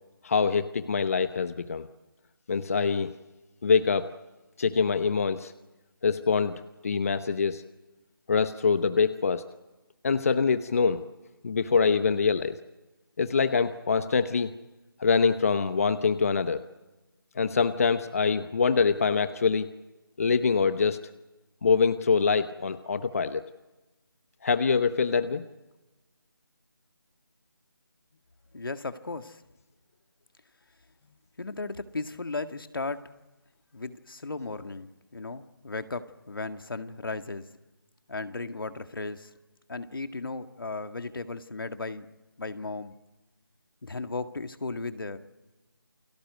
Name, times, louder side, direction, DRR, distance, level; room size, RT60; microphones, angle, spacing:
voice 1, 0.2-1.9 2.5-3.1 3.6-4.1 4.6-5.5 6.0-7.6 8.3-9.5 10.0-11.1 11.4-12.6 13.2-14.5 15.0-16.6 17.4-19.7 20.2-21.0 21.6-23.5 24.4-25.4, left 5 dB, 40° left, 11 dB, 0.9 m, -24 dB
voice 2, 28.5-29.4 31.4-33.0 33.7-37.5 38.1-39.3 39.7-42.1 42.4-43.0 43.8-45.2, left 3 dB, 70° left, 8 dB, 1.8 m, -35 dB
29.0 x 22.5 x 8.0 m, 1.1 s
figure-of-eight pair, 165°, 12 cm